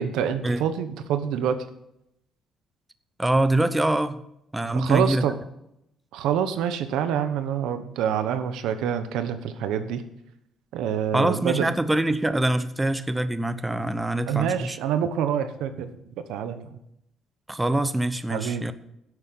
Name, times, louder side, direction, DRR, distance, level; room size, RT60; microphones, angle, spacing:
voice 1, 0.0-1.6 4.7-5.4 6.1-10.0 10.7-11.7 14.3-15.9 16.3-16.8 18.3-18.7, right 8 dB, 85° right, 10 dB, 1.1 m, -26 dB
voice 2, 3.2-4.2 4.5-5.2 11.1-14.8 17.5-18.7, right 1 dB, 10° right, 12 dB, 0.7 m, -24 dB
11.0 x 8.3 x 5.9 m, 0.80 s
cardioid pair, 105°, 0 cm